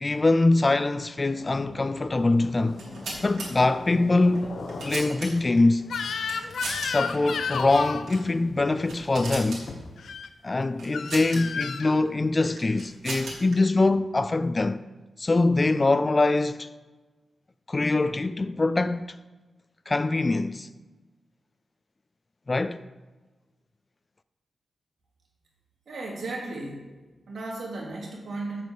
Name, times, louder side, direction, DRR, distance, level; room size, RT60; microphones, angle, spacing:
voice 1, 0.0-2.8 3.2-4.6 4.8-5.9 6.8-9.7 10.4-14.8 15.2-16.7 17.7-19.2 19.9-20.7 22.5-22.8, left 2 dB, 25° left, 0.3 m, -23 dB
sound 1, 1.0-10.2, left 3 dB, 55° left, 1.3 m, -43 dB
sound 2, 2.7-3.5 4.3-5.6 6.2-6.9 7.2-7.3 8.0-8.3 8.6-9.6 10.8-11.4 12.4-13.5, right 3 dB, 90° right, 3.4 m, -37 dB
Crying sobbing / Screech, 5.9-8.1 10.0-10.3 10.9-11.9, left 6 dB, 80° left, 0.6 m, -32 dB
voice 2, 25.9-26.9 27.3-28.6, right 2 dB, 65° right, 3.1 m, -35 dB
8.4 x 7.5 x 6.7 m
wide cardioid pair, 155°, 0 cm